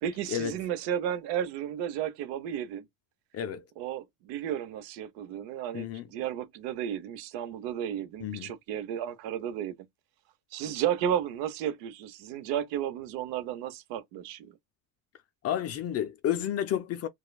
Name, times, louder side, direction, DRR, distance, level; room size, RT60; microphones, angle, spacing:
voice 1, 0.0-2.8 3.8-9.7 10.5-14.5, right 10 dB, 75° right, 0.9 m, -33 dB
voice 2, 3.3-3.6 5.7-6.1 8.2-8.5 15.4-17.1, left 10 dB, 35° left, 0.4 m, -31 dB
3.1 x 2.3 x 2.2 m
cardioid pair, 130°, 43 cm